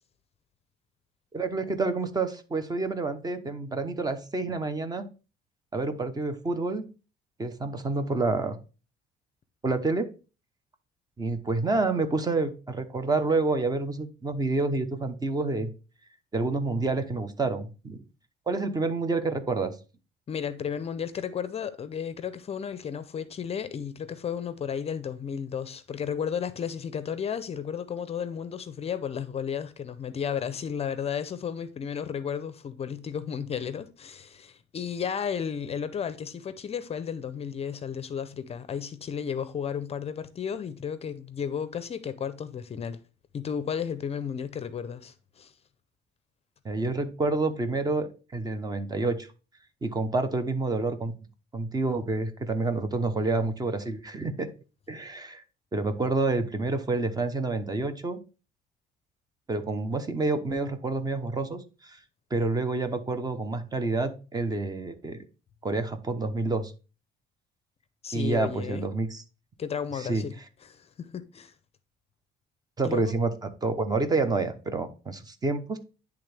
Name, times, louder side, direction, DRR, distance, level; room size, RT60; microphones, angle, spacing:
voice 1, 1.3-5.0 5.7-6.9 7.4-8.6 9.6-10.1 11.2-15.7 16.3-18.0 18.5-19.7 46.6-49.3 49.8-51.1 51.5-54.5 54.9-55.4 55.7-58.2 59.5-62.0 62.3-65.2 65.6-66.7 68.1-69.2 69.9-70.2 72.8-75.8, right 3 dB, 25° right, 0.8 m, -28 dB
voice 2, 20.3-43.0 43.3-45.5 68.0-68.9 69.6-70.3 70.6-71.5 72.8-73.1, left 7 dB, 35° left, 0.5 m, -33 dB
10.0 x 3.5 x 3.4 m
cardioid pair, 110°, 17 cm